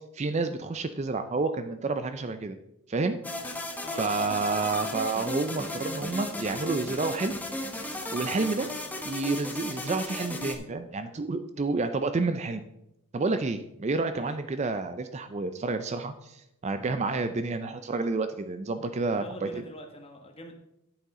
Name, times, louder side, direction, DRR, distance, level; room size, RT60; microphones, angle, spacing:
voice 1, 0.1-2.6 2.9-3.2 4.0-7.3 7.7-8.7 9.1-12.6 13.1-19.6, right 3 dB, 30° right, 10 dB, 0.4 m, -29 dB
sound 1, 3.2-10.6, left 1 dB, 5° left, 0.8 m, -35 dB
voice 2, 3.8-4.3 14.2-14.4 19.2-20.5, left 1 dB, 25° left, 3 dB, 1.2 m, -44 dB
9.2 x 7.9 x 3.7 m, 0.84 s
head